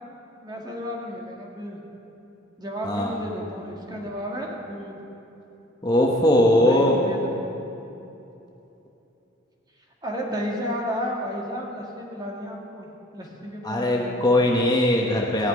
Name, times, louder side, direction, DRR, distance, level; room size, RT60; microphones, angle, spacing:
voice 1, 0.4-1.8 2.6-5.0 6.6-7.3 10.0-12.9 13.1-14.3, equal, 20° right, -1 dB, 2.0 m, -32 dB
voice 2, 5.8-7.0 13.6-15.5, left 1 dB, 20° left, -1 dB, 1.1 m, -20 dB
17.5 x 5.9 x 9.9 m, 2.9 s
head